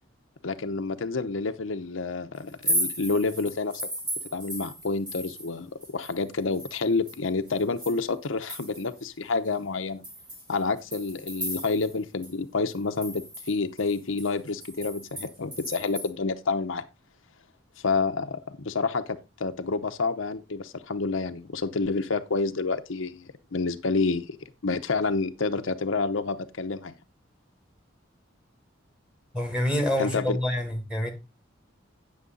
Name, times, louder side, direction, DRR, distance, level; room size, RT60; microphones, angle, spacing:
voice 1, 0.4-3.9 4.3-10.0 10.5-16.8 17.8-24.4 24.6-26.9 30.0-30.4, left 4 dB, 80° left, 0.7 m, -29 dB
sound 1, 2.5-5.5 5.8-9.0 9.4-9.5 10.0-12.0 12.2-12.3 12.7-16.1, equal, 25° right, 3.2 m, -35 dB
voice 2, 29.3-31.1, left 1 dB, 5° right, 1.9 m, -27 dB
9.6 x 6.6 x 3.8 m
head